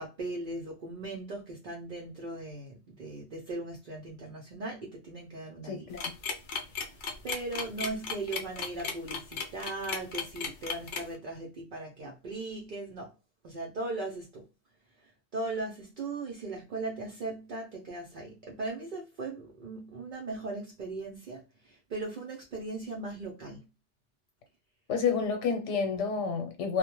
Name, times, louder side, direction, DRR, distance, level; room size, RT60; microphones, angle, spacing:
voice 1, 0.0-5.9 6.6-6.8 7.2-13.1 13.4-14.5 15.0-23.7, right 2 dB, 55° right, 0.6 m, -38 dB
voice 2, 5.6-6.1 24.9-26.8, left 5 dB, 80° left, 1.0 m, -29 dB
sound 1, 6.0-11.2, left 5 dB, 60° left, 0.6 m, -34 dB
2.2 x 2.1 x 2.9 m
omnidirectional pair, 1.2 m